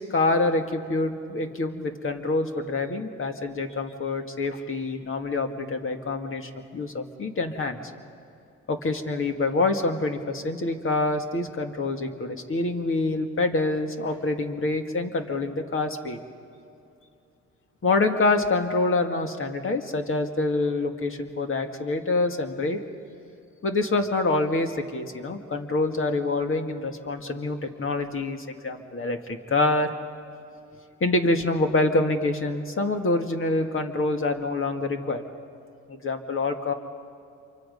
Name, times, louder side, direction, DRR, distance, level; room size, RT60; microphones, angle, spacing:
voice 1, 0.0-7.8 8.7-16.2 17.8-22.8 23.6-29.9 31.0-35.2 35.9-36.7, left 2 dB, 45° left, 5 dB, 2.1 m, -26 dB
27.5 x 24.5 x 5.4 m, 2.5 s
cardioid pair, 90°, 30 cm